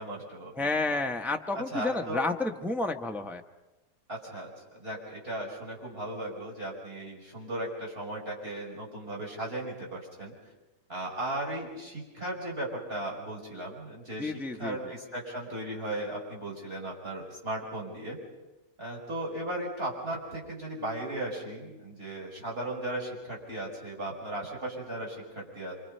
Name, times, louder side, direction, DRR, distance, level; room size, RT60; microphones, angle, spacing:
voice 1, 0.0-1.0 1.5-2.2 4.1-10.3 10.9-18.2 18.8-25.8, right 1 dB, 30° right, -2 dB, 5.7 m, -36 dB
voice 2, 0.6-3.4 14.2-14.8, left 2 dB, 5° right, 4 dB, 0.3 m, -30 dB
27.0 x 24.5 x 5.5 m, 1.1 s
omnidirectional pair, 2.0 m